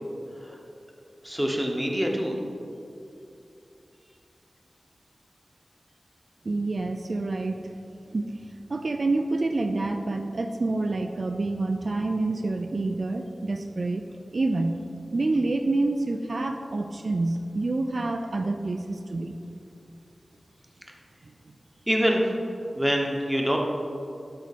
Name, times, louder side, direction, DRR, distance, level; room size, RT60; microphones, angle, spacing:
voice 1, 1.2-2.4 21.9-22.2 22.8-23.6, equal, 5° right, 0 dB, 1.0 m, -25 dB
voice 2, 6.5-7.6 8.1-8.3 8.7-14.0 14.3-14.8 15.1-19.4, right 2 dB, 55° right, 4 dB, 0.4 m, -27 dB
11.5 x 4.2 x 4.2 m, 2.6 s
wide cardioid pair, 95°, 0 cm